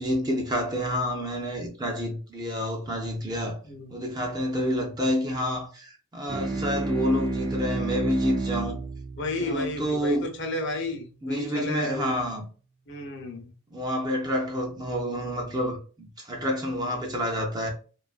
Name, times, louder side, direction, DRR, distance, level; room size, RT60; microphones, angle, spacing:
voice 1, 0.0-3.6 3.9-8.8 9.4-10.3 11.2-12.5 13.7-17.7, equal, 20° right, 0.4 m, -28 dB
voice 2, 3.6-3.9 6.5-6.8 9.2-12.2 12.9-13.5, left 2 dB, 55° left, 0.6 m, -33 dB
sound 1, 6.3-11.1, right 3 dB, 75° right, 0.8 m, -32 dB
2.6 x 2.4 x 2.3 m
head